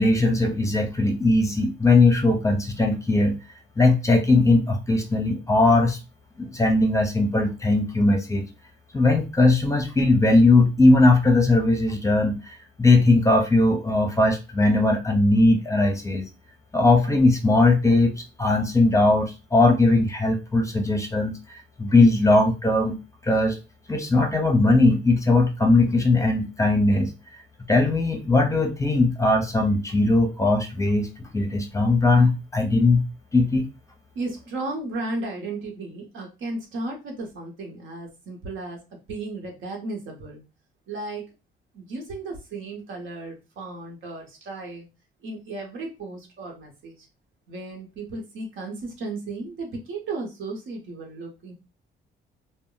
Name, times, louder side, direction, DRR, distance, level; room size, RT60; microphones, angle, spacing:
voice 1, 0.0-3.4 3.8-6.0 6.4-8.5 8.9-16.3 16.7-18.1 18.4-23.6 23.9-27.1 27.7-33.0 33.3-33.6, left 2 dB, 15° left, 4 dB, 0.6 m, -19 dB
voice 2, 34.1-40.4 40.9-41.3 41.7-44.9 45.2-47.1 47.5-51.5, right 2 dB, 75° right, 1 dB, 1.0 m, -34 dB
2.1 x 2.0 x 3.8 m, 0.28 s
cardioid pair, 90°, 20 cm